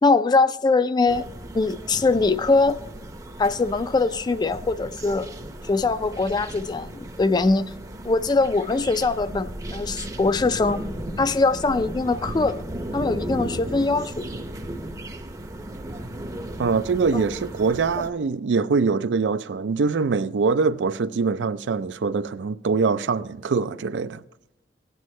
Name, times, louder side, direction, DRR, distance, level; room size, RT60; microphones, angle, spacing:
voice 1, 0.0-1.2 1.5-2.8 3.4-5.3 5.6-7.7 8.0-10.8 11.2-12.6 12.9-14.3 17.1-17.3, left 3 dB, 25° left, 0.3 m, -22 dB
sound 1, 1.1-18.1, right 1 dB, 20° right, 0.6 m, -35 dB
voice 2, 16.6-24.2, right 4 dB, 85° right, 0.4 m, -23 dB
16.0 x 9.3 x 3.2 m
head